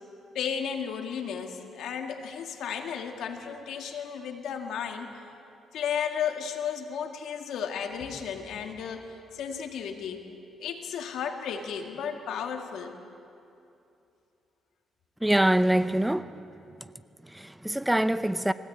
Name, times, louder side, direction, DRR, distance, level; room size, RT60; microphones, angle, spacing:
voice 1, 0.3-5.2 5.7-10.2 10.6-12.9, left 7 dB, 75° left, 2.2 m, -34 dB
voice 2, 15.2-16.3 17.2-18.5, right 1 dB, 5° right, 0.6 m, -24 dB
23.0 x 17.0 x 8.7 m
cardioid pair, 90°, 0 cm